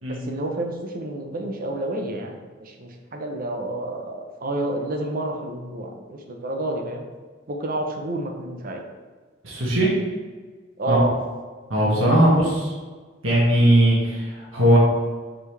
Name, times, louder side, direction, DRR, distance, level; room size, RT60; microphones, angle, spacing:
voice 1, 0.1-7.1 7.5-8.8 10.8-11.2, right 2 dB, 45° right, 3 dB, 0.8 m, -29 dB
voice 2, 9.4-9.9 10.9-11.0 11.7-12.7 13.2-14.8, right 1 dB, 75° right, -5 dB, 1.6 m, -19 dB
7.1 x 4.3 x 3.3 m, 1.4 s
head